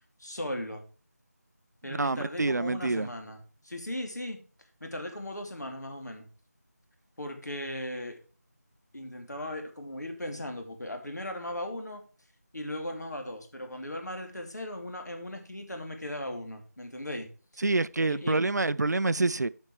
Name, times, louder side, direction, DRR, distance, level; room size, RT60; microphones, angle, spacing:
voice 1, 0.2-0.8 1.8-4.4 4.8-6.3 7.2-8.2 8.9-12.0 12.5-17.6 18.1-18.4, left 1 dB, 80° left, 2.6 m, -38 dB
voice 2, 2.0-3.1 17.6-19.5, right 3 dB, 80° right, 0.5 m, -27 dB
9.1 x 5.5 x 4.7 m
figure-of-eight pair, 170°, 9 cm